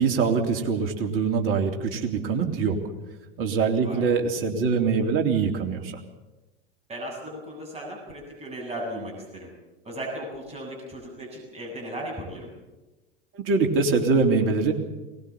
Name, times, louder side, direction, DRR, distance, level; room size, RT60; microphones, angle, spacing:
voice 1, 0.0-2.8 3.4-5.9 13.3-14.7, right 5 dB, 45° right, 3 dB, 3.4 m, -23 dB
voice 2, 3.7-4.1 6.9-9.5 9.8-12.5, right 1 dB, 20° right, 0 dB, 8.0 m, -36 dB
22.0 x 19.0 x 7.4 m, 1.1 s
hypercardioid pair, 85°, 29 cm